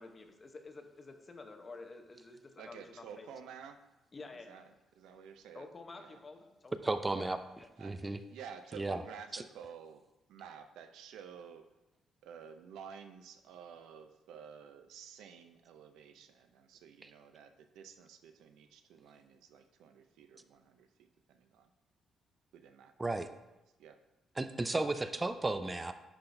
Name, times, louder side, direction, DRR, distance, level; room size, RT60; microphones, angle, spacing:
voice 1, 0.0-3.3 4.1-4.6 5.5-7.3 7.6-7.7, left 3 dB, 35° left, 5 dB, 0.8 m, -50 dB
voice 2, 2.6-3.8 4.5-5.7 6.0-6.2 7.8-8.0 8.3-10.0 10.3-11.6 12.2-20.9 21.3-21.7 22.5-22.9 23.2-23.3 23.8-24.0, right 7 dB, 85° right, 8 dB, 0.4 m, -51 dB
voice 3, 6.8-7.4 7.8-8.2 8.7-9.0 9.3-9.4 17.0-17.1 23.0-23.3 24.4-25.9, right 2 dB, 20° right, 10 dB, 0.4 m, -34 dB
10.0 x 3.8 x 2.6 m, 0.96 s
cardioid pair, 90°, 0 cm